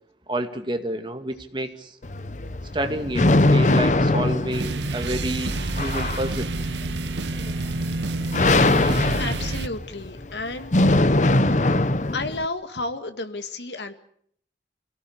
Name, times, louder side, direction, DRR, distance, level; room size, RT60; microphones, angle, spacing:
voice 1, 0.3-2.0 2.7-6.5, right 1 dB, 25° right, 6 dB, 2.3 m, -29 dB
sound 1, 2.0-12.5, left 2 dB, 45° left, 0.9 m, -22 dB
sound 2, 4.5-9.7, right 2 dB, 85° right, 1.0 m, -28 dB
voice 2, 9.2-10.7 12.1-13.9, left 2 dB, 85° left, 8 dB, 2.1 m, -32 dB
26.5 x 17.5 x 8.6 m, 0.65 s
head